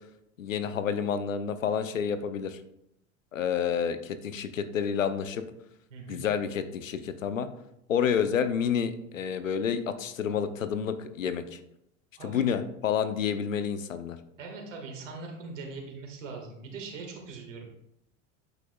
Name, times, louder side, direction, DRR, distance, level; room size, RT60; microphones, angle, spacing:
voice 1, 0.4-2.6 3.3-5.4 6.1-7.5 7.9-11.6 12.2-14.2, left 7 dB, 90° left, 10 dB, 0.7 m, -29 dB
voice 2, 5.9-6.2 12.2-12.4 14.4-17.7, right 4 dB, 80° right, 1 dB, 1.9 m, -41 dB
8.7 x 8.2 x 2.3 m, 0.79 s
hypercardioid pair, 85°, 38 cm